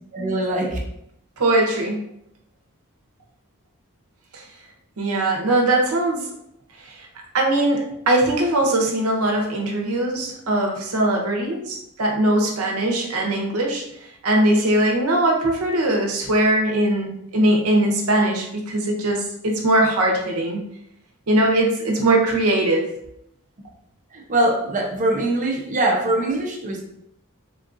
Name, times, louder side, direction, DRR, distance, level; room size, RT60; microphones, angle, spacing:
voice 1, 0.1-0.8 24.1-26.9, right 1 dB, 35° right, 0 dB, 0.6 m, -22 dB
voice 2, 1.4-2.0 4.3-4.4 5.0-6.3 6.8-7.1 7.3-13.8 14.2-20.6 21.3-22.9, right 1 dB, 75° right, 0 dB, 0.7 m, -20 dB
3.7 x 2.4 x 2.6 m, 0.76 s
head